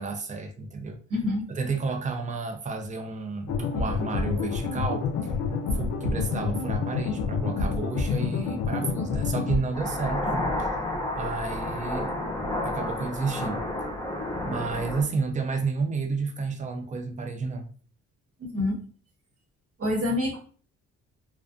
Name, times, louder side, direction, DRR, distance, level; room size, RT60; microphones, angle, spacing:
voice 1, 0.0-1.0 1.5-5.3 5.7-10.9 11.2-12.1 12.6-13.6 14.4-17.7, right 4 dB, 25° right, 5 dB, 0.5 m, -31 dB
voice 2, 1.1-1.4 18.4-18.8 19.8-20.4, left 2 dB, 50° right, -2 dB, 1.2 m, -26 dB
sound 1, 3.5-9.6, left 5 dB, 70° left, 0.5 m, -28 dB
sound 2, 9.7-15.0, left 1 dB, 10° left, 0.7 m, -30 dB
2.4 x 2.2 x 2.3 m, 0.42 s
cardioid pair, 90°, 30 cm